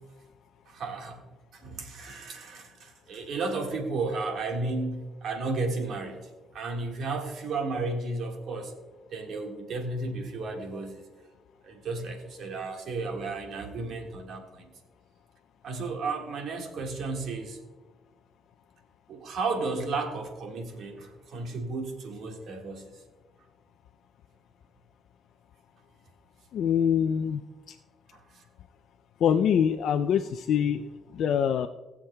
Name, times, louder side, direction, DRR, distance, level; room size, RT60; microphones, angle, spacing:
voice 1, 0.6-1.2 1.5-6.3 6.5-8.7 9.1-11.0 11.6-14.7 15.6-17.6 19.1-23.0 28.1-28.4, right 3 dB, 70° right, 3 dB, 1.7 m, -33 dB
voice 2, 26.5-27.8 29.2-31.7, left 8 dB, 75° left, 6 dB, 0.4 m, -25 dB
19.5 x 7.2 x 2.3 m, 1.2 s
cardioid pair, 90°, 0 cm